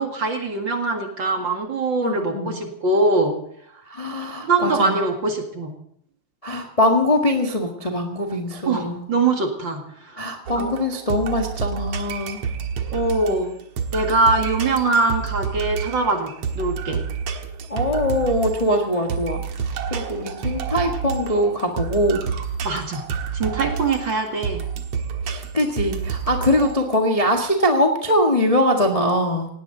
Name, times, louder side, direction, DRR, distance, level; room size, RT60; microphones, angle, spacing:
voice 1, 0.0-3.4 4.4-5.7 8.7-10.2 10.6-10.7 12.9-13.5 13.9-17.0 22.6-23.0 23.3-24.6, right 3 dB, 40° right, 3 dB, 2.4 m, -22 dB
voice 2, 2.0-2.6 3.9-5.0 6.4-9.1 10.2-12.4 17.7-19.4 19.9-22.2 25.2-29.5, left 1 dB, 15° left, 1 dB, 1.2 m, -22 dB
sound 1, 10.5-27.0, right 6 dB, 65° right, 2.4 m, -29 dB
19.0 x 17.0 x 4.0 m, 0.68 s
omnidirectional pair, 3.4 m